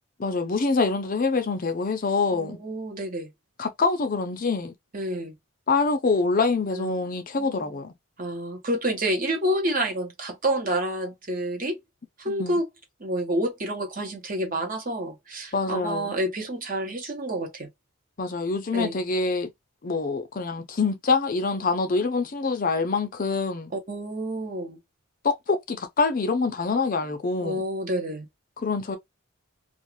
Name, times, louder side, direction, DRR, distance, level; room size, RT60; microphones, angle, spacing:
voice 1, 0.2-2.6 3.6-4.7 5.7-7.9 12.3-12.6 15.5-16.1 18.2-19.5 19.8-23.7 25.2-27.6 28.6-29.0, left 4 dB, 40° left, 0.5 m, -25 dB
voice 2, 2.3-3.3 4.9-5.4 6.7-7.0 7.4-7.8 8.2-11.8 12.2-12.7 13.0-17.7 18.7-19.0 23.7-24.8 27.4-28.3, right 1 dB, 40° right, 0.9 m, -29 dB
2.4 x 2.3 x 2.9 m
head